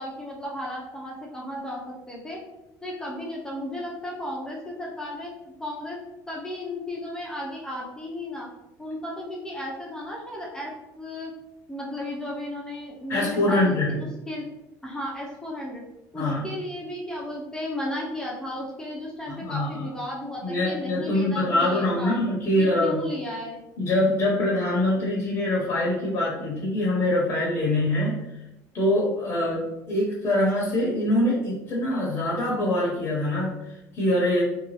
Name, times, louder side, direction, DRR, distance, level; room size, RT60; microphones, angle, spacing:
voice 1, 0.0-2.4 2.8-5.3 5.6-6.0 6.3-8.5 8.8-11.3 11.7-14.5 14.8-15.8 16.1-22.2 22.5-23.6, left 1 dB, 10° left, -3 dB, 0.6 m, -34 dB
voice 2, 13.1-14.0 16.1-16.5 19.3-19.9 20.4-23.0 23.8-28.2 28.7-34.4, left 1 dB, 45° left, -4 dB, 0.8 m, -24 dB
2.7 x 2.2 x 3.0 m, 0.92 s
cardioid pair, 145°, 7 cm